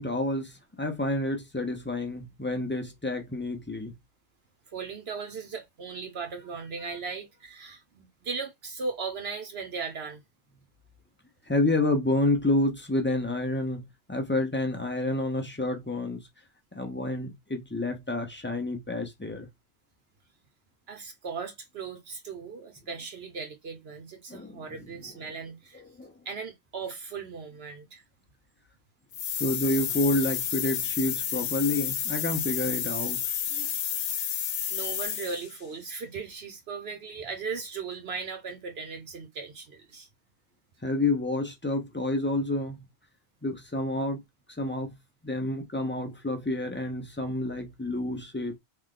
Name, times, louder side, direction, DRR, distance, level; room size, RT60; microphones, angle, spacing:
voice 1, 0.0-4.0 11.5-16.3 16.7-19.5 24.3-24.6 26.0-26.1 29.4-33.3 40.8-42.9 43.4-44.2 44.6-45.0 45.2-48.6, left 2 dB, 15° left, 0.6 m, -29 dB
voice 2, 4.7-10.2 20.9-25.8 26.2-28.0 33.5-34.3 34.7-40.1, right 5 dB, 65° right, 1.0 m, -38 dB
sound 1, 29.1-35.6, left 9 dB, 90° left, 0.9 m, -31 dB
3.3 x 2.4 x 3.7 m
omnidirectional pair, 1.1 m